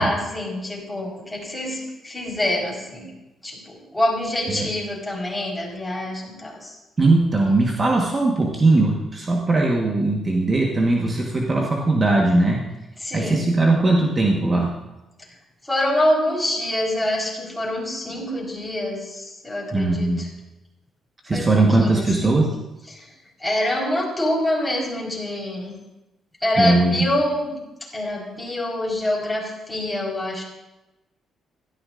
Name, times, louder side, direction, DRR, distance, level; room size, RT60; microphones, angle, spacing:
voice 1, 0.0-3.1 3.4-6.8 13.0-13.4 15.7-20.3 21.3-22.4 22.9-23.1 23.4-25.7 26.4-27.6 27.9-30.4, left 1 dB, 10° left, -3 dB, 4.5 m, -25 dB
voice 2, 7.0-12.6 13.1-14.7 19.7-20.2 21.2-22.5 26.6-27.1, right 2 dB, 30° right, -1 dB, 1.4 m, -19 dB
16.0 x 13.5 x 2.6 m, 1.0 s
cardioid pair, 90°, 0 cm